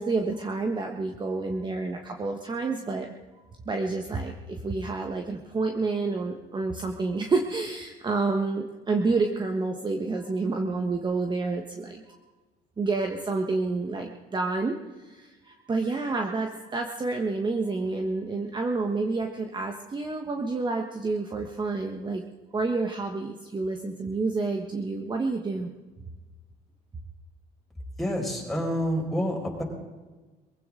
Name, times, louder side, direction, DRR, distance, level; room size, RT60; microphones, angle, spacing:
voice 1, 0.0-3.1 3.6-12.2 12.8-22.2 22.5-25.7, right 3 dB, 25° right, 3 dB, 1.4 m, -29 dB
voice 2, 28.0-29.6, equal, ahead, -2 dB, 5.4 m, -28 dB
22.5 x 16.0 x 3.8 m, 1.3 s
cardioid pair, 110°, 17 cm